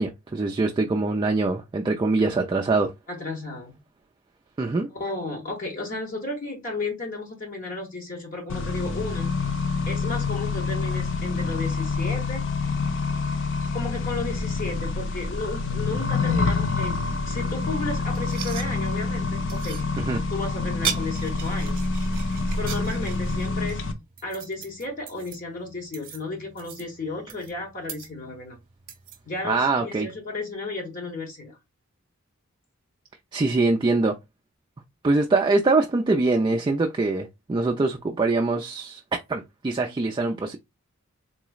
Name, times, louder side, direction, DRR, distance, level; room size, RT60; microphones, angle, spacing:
voice 1, 0.0-2.9 4.6-4.9 20.0-20.2 29.4-30.1 33.3-34.1 35.0-39.0 39.3-40.6, right 3 dB, 20° right, 0.3 m, -23 dB
voice 2, 3.1-3.8 4.9-9.3 9.9-12.4 13.7-19.8 20.3-21.8 22.5-23.8 24.2-28.6 29.3-31.6, left 2 dB, 40° left, 1.0 m, -33 dB
Accelerating revving vroom, 8.5-23.9, left 4 dB, 55° left, 0.6 m, -27 dB
sound 1, 18.1-29.6, right 8 dB, 40° right, 0.9 m, -38 dB
3.9 x 3.0 x 2.3 m
head